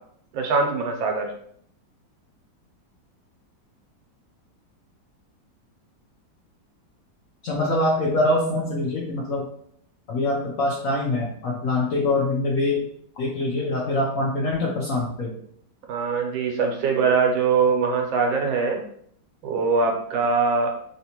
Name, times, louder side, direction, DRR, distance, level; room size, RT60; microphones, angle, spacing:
voice 1, 0.3-1.3 15.9-18.8 19.4-20.7, right 4 dB, 85° right, 2 dB, 1.5 m, -22 dB
voice 2, 7.4-9.5 10.1-12.9 13.2-15.3, left 2 dB, 75° left, -3 dB, 0.7 m, -24 dB
3.2 x 2.9 x 2.8 m, 0.64 s
omnidirectional pair, 2.1 m